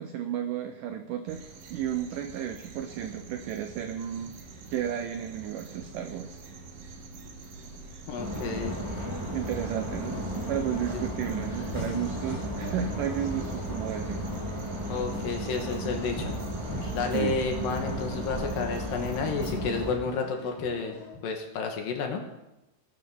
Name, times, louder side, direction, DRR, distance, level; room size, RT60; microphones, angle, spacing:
voice 1, 0.0-1.4 1.7-4.3 4.7-6.4 9.3-14.3 16.9-17.4, right 9 dB, 85° right, 7 dB, 1.9 m, -33 dB
sound 1, 1.3-19.5, right 3 dB, 65° right, 2.8 m, -46 dB
sound 2, 7.6-21.2, left 3 dB, 90° left, 4.5 m, -44 dB
voice 2, 8.1-8.8 10.9-11.0 14.9-16.3 16.9-21.0 21.2-22.3, left 5 dB, 65° left, 3 dB, 2.9 m, -31 dB
sound 3, 8.2-19.9, right 1 dB, 10° right, 2.5 m, -34 dB
18.0 x 12.0 x 3.7 m, 0.96 s
omnidirectional pair, 4.7 m